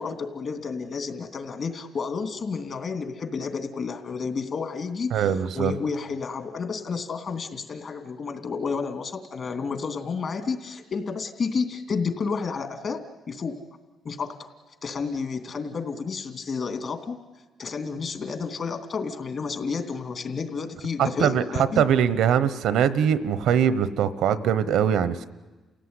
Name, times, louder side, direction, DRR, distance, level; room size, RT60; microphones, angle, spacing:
voice 1, 0.0-13.6 14.0-14.5 14.8-17.2 17.6-21.8, left 5 dB, 50° left, 6 dB, 2.9 m, -31 dB
voice 2, 5.1-5.7 21.0-21.4 21.8-25.2, right 8 dB, 85° right, 14 dB, 1.1 m, -22 dB
29.5 x 16.5 x 9.8 m, 1.2 s
cardioid pair, 90°, 0 cm